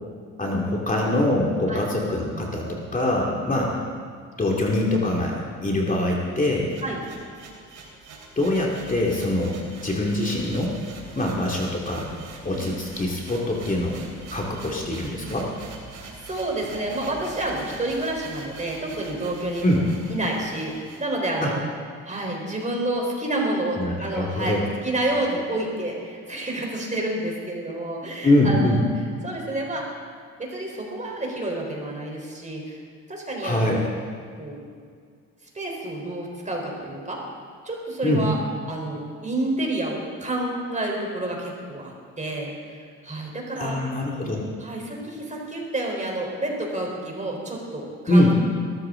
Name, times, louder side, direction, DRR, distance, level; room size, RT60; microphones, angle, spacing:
voice 1, 0.4-3.7 4.4-6.7 8.4-10.7 11.2-12.1 12.4-14.0 14.3-15.5 19.6-19.8 21.4-21.5 23.8-24.6 28.2-28.8 33.4-33.8 38.0-38.2 43.6-44.5 48.1-48.3, left 1 dB, 25° left, -2 dB, 2.5 m, -23 dB
voice 2, 3.0-3.4 6.8-7.0 11.2-11.4 12.5-12.8 14.5-14.6 16.2-21.6 22.0-28.8 29.2-29.9 30.4-32.8 33.1-33.9 34.4-34.6 35.5-37.2 37.6-38.4 38.7-42.8 43.0-43.8 44.6-48.3, right 1 dB, 25° right, 0 dB, 4.1 m, -29 dB
sound 1, 6.0-21.0, right 3 dB, 75° right, 3.4 m, -43 dB
21.0 x 13.5 x 3.8 m, 2.1 s
cardioid pair, 90°, 30 cm